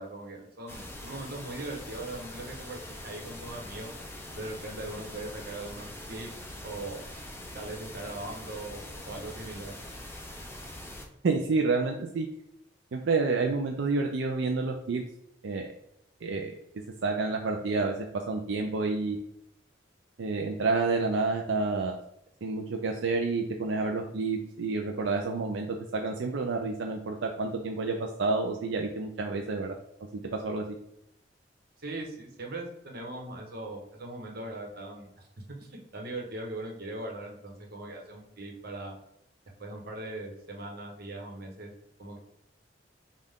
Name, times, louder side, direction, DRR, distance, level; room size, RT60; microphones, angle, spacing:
voice 1, 0.0-3.9 4.3-6.3 6.6-7.0 7.5-8.8 9.1-9.7 31.8-35.3 35.6-38.9 39.6-41.7 42.0-42.2, right 2 dB, 55° right, 1 dB, 1.1 m, -40 dB
sound 1, 0.7-11.1, left 1 dB, 15° left, 0.6 m, -43 dB
voice 2, 11.2-12.3 12.9-15.0 15.4-15.7 16.2-16.6 17.0-19.2 20.2-21.9 22.4-29.7 30.1-30.7, right 3 dB, 85° right, 2 dB, 0.5 m, -29 dB
5.5 x 2.4 x 3.6 m, 0.79 s
head